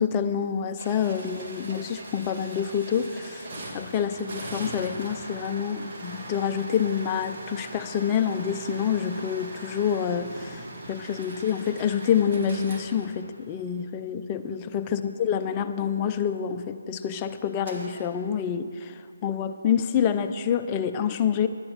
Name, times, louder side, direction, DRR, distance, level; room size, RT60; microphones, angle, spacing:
voice 1, 0.0-3.5 3.7-21.5, left 8 dB, 20° left, 7 dB, 0.5 m, -27 dB
sound 1, 0.8-13.8 17.6-18.1, right 1 dB, 40° right, 1.8 m, -40 dB
10.5 x 9.9 x 5.0 m, 2.3 s
figure-of-eight pair, 155°, 0 cm